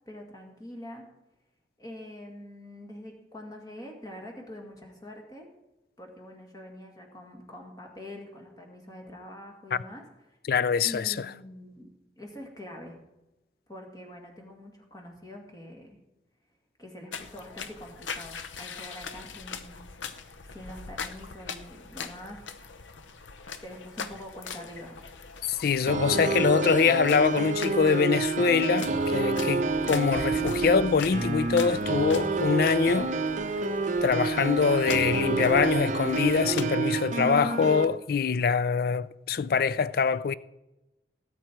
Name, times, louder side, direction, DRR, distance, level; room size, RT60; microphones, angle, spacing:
voice 1, 0.1-1.0 1.8-5.5 6.0-10.4 10.8-11.9 12.2-13.0 13.7-16.0 16.8-20.0 20.5-22.7 23.6-25.0 25.9-26.7 37.1-37.7, left 1 dB, 20° left, 2.0 m, -44 dB
voice 2, 10.5-11.3 25.5-33.1 34.0-40.3, left 5 dB, 50° left, 0.4 m, -24 dB
sound 1, 17.1-36.7, left 5 dB, 90° left, 0.8 m, -42 dB
sound 2, 25.9-37.8, right 3 dB, 40° right, 0.6 m, -28 dB
sound 3, 29.0-33.3, equal, ahead, 1.9 m, -47 dB
17.5 x 8.7 x 4.5 m
head